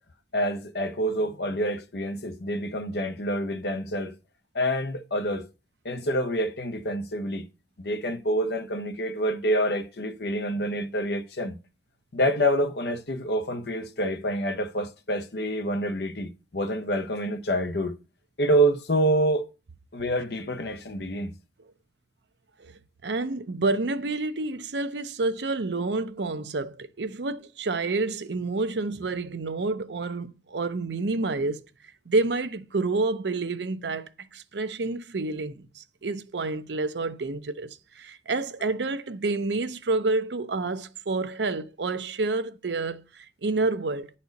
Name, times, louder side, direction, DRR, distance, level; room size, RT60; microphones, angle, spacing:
voice 1, 0.3-4.1 4.5-5.5 5.8-7.4 7.8-11.6 12.1-18.0 18.4-19.4 19.9-21.3, right 1 dB, 65° left, 0.8 m, -27 dB
voice 2, 23.0-31.6 32.1-44.1, right 3 dB, 75° right, 0.7 m, -29 dB
9.4 x 4.3 x 5.2 m
head